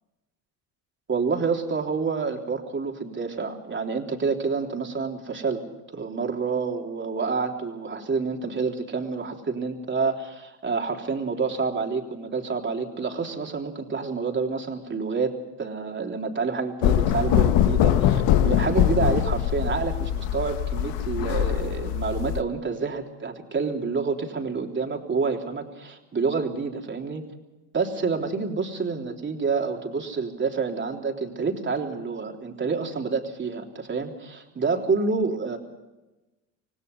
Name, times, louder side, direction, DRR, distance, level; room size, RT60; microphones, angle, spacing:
voice 1, 1.1-5.6 5.9-27.2 27.7-35.6, right 4 dB, 25° right, 2 dB, 3.5 m, -28 dB
sound 1, 16.8-22.4, left 11 dB, 65° left, 1.5 m, -22 dB
26.5 x 18.0 x 5.5 m, 1.0 s
supercardioid pair, 95°, 44 cm